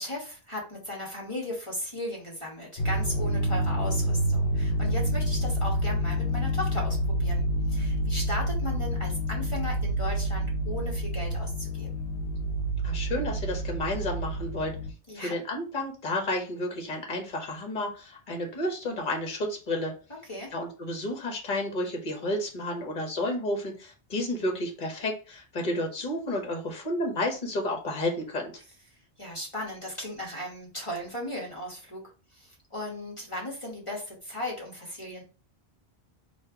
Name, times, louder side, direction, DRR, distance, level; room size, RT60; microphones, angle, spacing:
voice 1, 0.0-12.0 15.1-15.3 20.2-20.5 28.9-35.2, left 1 dB, 30° left, -3 dB, 1.3 m, -36 dB
sound 1, 2.8-14.9, equal, 70° left, 1.0 m, -28 dB
voice 2, 12.8-14.7 15.1-19.9 20.5-28.5, left 1 dB, 45° left, 2 dB, 1.2 m, -31 dB
4.3 x 2.5 x 4.6 m, 0.35 s
omnidirectional pair, 1.1 m